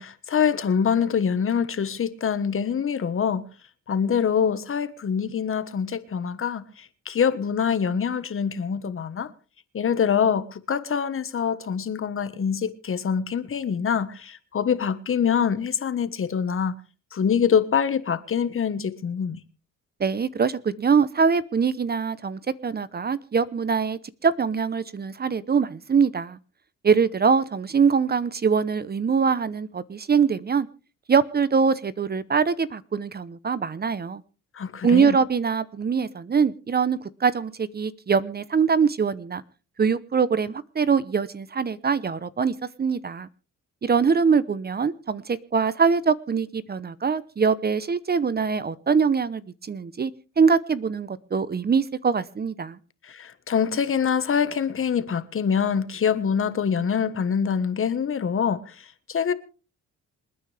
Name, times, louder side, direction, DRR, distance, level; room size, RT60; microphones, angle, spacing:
voice 1, 0.0-3.4 3.9-9.3 9.7-16.8 17.1-19.4 34.5-35.2 53.0-59.3, left 7 dB, 45° left, 1.4 m, -25 dB
voice 2, 20.0-26.4 26.8-30.7 31.1-34.2 34.8-39.4 39.8-43.3 43.8-50.1 50.4-52.8, right 6 dB, 30° right, 0.9 m, -23 dB
27.5 x 9.5 x 3.4 m
cardioid pair, 90°, 30 cm